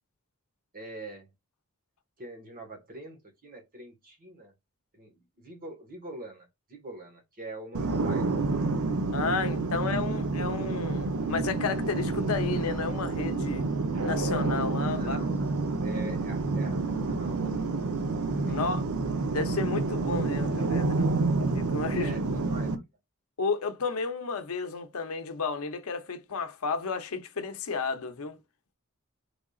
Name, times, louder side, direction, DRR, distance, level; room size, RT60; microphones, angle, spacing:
voice 1, 0.7-1.3 2.2-4.5 4.9-5.1 5.4-8.3 9.3-10.2 14.9-17.8 18.5-18.8 21.9-22.9, right 2 dB, 40° right, 1.4 m, -44 dB
sound 1, 7.7-22.7, right 3 dB, 80° right, 0.6 m, -29 dB
voice 2, 9.1-13.7 14.0-15.2 18.4-18.8 19.3-21.1 21.4-22.2 23.4-28.4, left 4 dB, 75° left, 0.7 m, -32 dB
3.7 x 3.4 x 2.3 m
head